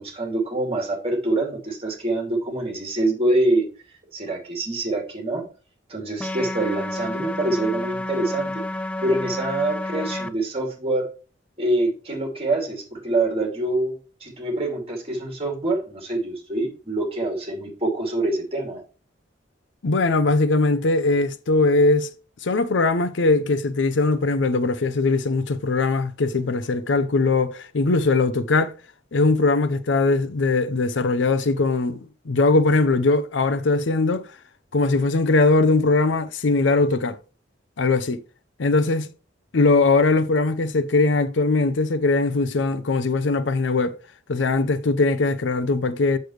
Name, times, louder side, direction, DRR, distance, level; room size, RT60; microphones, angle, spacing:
voice 1, 0.0-3.7 4.1-5.4 5.9-8.6 9.0-11.1 11.6-13.9 14.2-18.8, right 2 dB, 30° right, 2.7 m, -25 dB
sound 1, 6.2-10.3, left 1 dB, 5° left, 0.3 m, -30 dB
voice 2, 19.8-22.1 22.4-28.7 29.1-34.3 34.7-37.2 37.8-38.2 38.6-39.1 39.5-44.0 44.3-46.2, left 3 dB, 75° left, 0.6 m, -20 dB
7.9 x 6.7 x 3.2 m
head